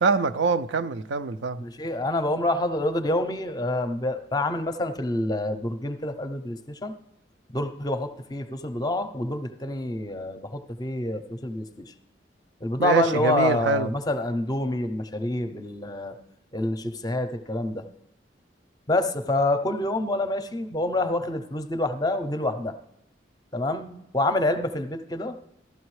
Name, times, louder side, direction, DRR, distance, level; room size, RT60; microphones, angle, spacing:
voice 1, 0.0-1.6 12.8-13.9, right 4 dB, 80° right, 0.4 m, -24 dB
voice 2, 1.6-6.9 7.5-11.9 12.6-16.1 16.5-17.8 18.9-22.7 23.5-25.4, left 1 dB, 20° left, 0.5 m, -27 dB
14.5 x 12.0 x 3.2 m
head